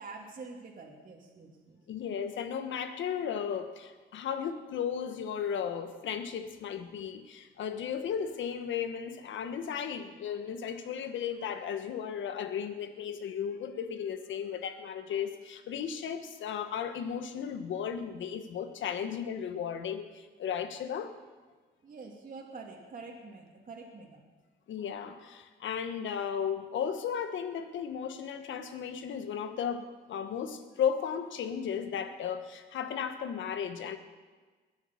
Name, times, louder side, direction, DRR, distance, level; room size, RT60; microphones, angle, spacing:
voice 1, 0.0-1.8 21.8-24.2, right 4 dB, 40° right, -2 dB, 2.7 m, -46 dB
voice 2, 1.9-21.1 24.7-34.0, left 8 dB, 75° left, 8 dB, 1.4 m, -35 dB
21.0 x 7.3 x 7.2 m, 1.4 s
cardioid pair, 90°, 20 cm